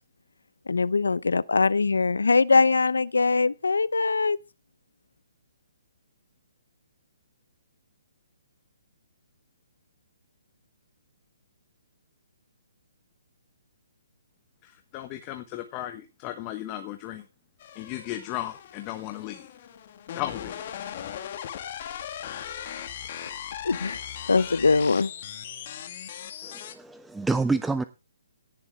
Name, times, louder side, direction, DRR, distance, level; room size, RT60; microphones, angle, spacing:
voice 1, 0.7-4.4 23.6-24.0 24.3-25.1, left 4 dB, 85° left, 0.7 m, -22 dB
voice 2, 14.6-17.2 17.7-19.5 20.1-20.7, left 14 dB, 30° left, 1.2 m, -36 dB
sound 1, 17.6-26.7, left 9 dB, 45° left, 1.9 m, -38 dB
voice 3, 26.4-27.8, right 3 dB, 5° right, 0.5 m, -27 dB
17.5 x 7.2 x 3.6 m
hypercardioid pair, 140°, 0 cm